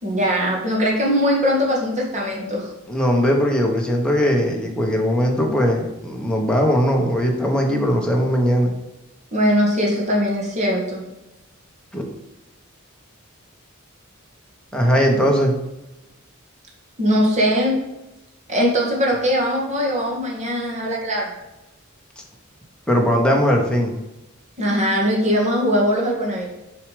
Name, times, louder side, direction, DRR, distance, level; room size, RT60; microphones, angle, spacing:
voice 1, 0.0-2.7 9.3-11.0 17.0-17.8 18.5-21.3 24.6-26.5, equal, 35° right, -2 dB, 1.8 m, -20 dB
voice 2, 2.9-8.7 11.9-12.0 14.7-15.5 22.9-23.9, equal, 5° left, 0 dB, 1.2 m, -19 dB
6.8 x 4.8 x 5.1 m, 0.94 s
head